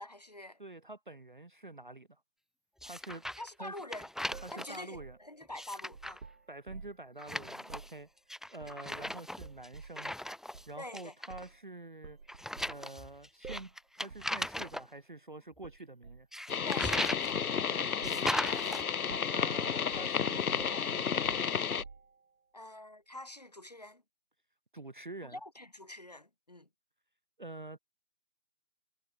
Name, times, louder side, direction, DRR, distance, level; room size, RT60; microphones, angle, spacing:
voice 1, 0.0-0.6 3.4-4.1 4.5-6.2 8.6-8.7 10.8-11.1 16.6-17.1 22.5-24.0 25.2-26.7, left 1 dB, 30° left, 0.8 m, -46 dB
voice 2, 0.6-2.2 2.8-3.3 3.6-3.7 4.4-5.2 6.5-8.1 8.5-10.2 10.7-12.2 12.7-16.3 17.7-18.4 19.3-21.2 24.7-25.4 27.4-27.8, right 2 dB, 35° right, 0.8 m, -47 dB
sound 1, 2.8-3.5 3.8-4.8 5.4-6.2 7.2-7.9 8.3-10.7 10.9-11.5 12.3-14.8 16.3-17.3 18.0-18.8, left 1 dB, ahead, 0.4 m, -38 dB
sound 2, 4.3-7.1 7.6-7.9 8.6-9.0 9.4-10.0 10.5-10.7 11.3-11.6 12.0-12.8 13.4-13.8 14.1-14.3 14.6-14.8 15.6-16.3 16.9-17.6 18.0-18.3 18.6-18.8 19.1-19.5 19.9-20.2 20.6-22.3, right 4 dB, 75° right, 2.0 m, -50 dB
sound 3, 16.5-21.8, left 7 dB, 85° left, 0.9 m, -32 dB
figure-of-eight pair, 170°, 42 cm